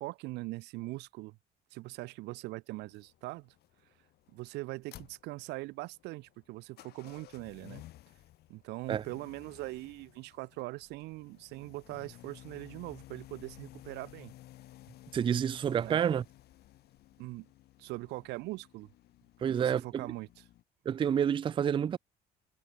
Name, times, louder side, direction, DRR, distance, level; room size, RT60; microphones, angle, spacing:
voice 1, 0.0-1.4 1.7-3.5 4.3-7.8 8.5-14.3 15.8-16.0 17.2-17.5 17.8-18.9 19.5-20.3, right 21 dB, 85° right, 0.6 m, -41 dB
sound 1, 2.8-20.6, left 15 dB, 70° left, 1.3 m, -56 dB
voice 2, 15.1-16.2 19.4-20.1 20.9-22.0, right 8 dB, 30° right, 0.4 m, -29 dB
cardioid pair, 110°, 17 cm